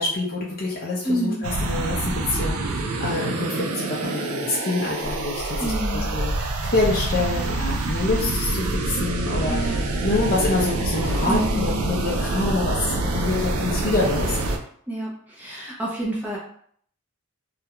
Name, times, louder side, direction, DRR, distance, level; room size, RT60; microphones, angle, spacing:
voice 1, 0.0-14.4, left 2 dB, 45° left, -5 dB, 0.5 m, -26 dB
voice 2, 1.0-1.4 5.6-6.1 9.5-9.8 11.3-11.8 14.9-16.4, right 1 dB, 10° right, -6 dB, 0.5 m, -28 dB
sound 1, 1.4-14.6, right 2 dB, 80° right, 0.4 m, -26 dB
2.3 x 2.1 x 2.8 m, 0.62 s
head